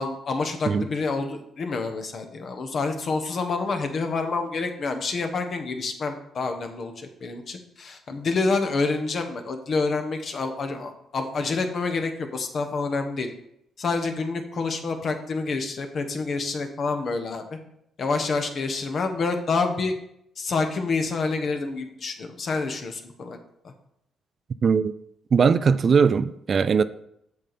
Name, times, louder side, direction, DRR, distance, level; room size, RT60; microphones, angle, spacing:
voice 1, 0.0-13.3 13.8-17.6 18.0-19.9 20.4-23.4 23.6-23.7, left 4 dB, 50° left, 1.2 m, -28 dB
voice 2, 24.6-24.9 25.3-26.8, right 6 dB, 45° right, 0.3 m, -20 dB
7.3 x 6.8 x 4.2 m
cardioid pair, 90°, 0 cm